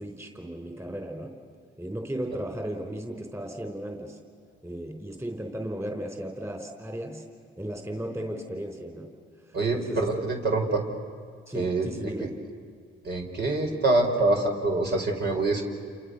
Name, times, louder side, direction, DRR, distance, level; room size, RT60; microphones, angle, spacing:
voice 1, 0.0-1.4 1.8-4.2 4.6-7.2 7.6-9.1 9.5-10.3 11.5-12.3, right 1 dB, 15° right, 4 dB, 4.0 m, -35 dB
voice 2, 9.5-10.8 11.5-11.9 13.0-15.6, right 2 dB, 55° right, 2 dB, 4.9 m, -25 dB
30.0 x 27.5 x 6.6 m, 2.3 s
cardioid pair, 90°, 20 cm